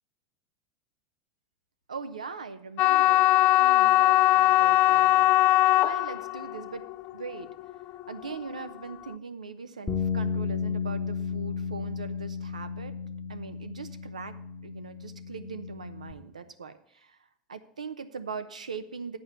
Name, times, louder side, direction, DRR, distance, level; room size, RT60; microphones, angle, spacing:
voice 1, 1.9-3.3 3.6-5.3 5.8-6.8 7.1-7.5 8.1-12.9 13.3-14.3 14.6-17.2 17.5-19.2, right 5 dB, 90° right, 11 dB, 0.8 m, -40 dB
sound 1, 2.8-8.9, left 16 dB, 50° left, 0.3 m, -21 dB
sound 2, 9.9-16.1, left 5 dB, 20° left, 1.0 m, -33 dB
9.8 x 4.8 x 7.8 m, 0.71 s
hypercardioid pair, 85°, 4 cm